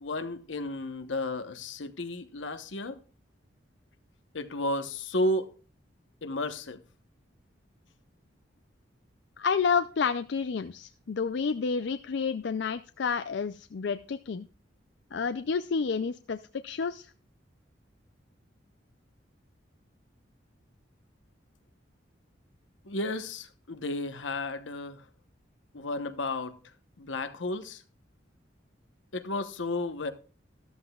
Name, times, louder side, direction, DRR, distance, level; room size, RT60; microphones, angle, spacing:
voice 1, 0.0-3.0 4.3-5.5 6.2-6.8 22.8-25.0 25.7-26.6 27.0-27.8 29.1-30.1, left 2 dB, 85° left, 1.0 m, -33 dB
voice 2, 9.4-14.5 15.1-17.1, left 5 dB, 65° left, 0.4 m, -30 dB
13.5 x 13.5 x 2.3 m
head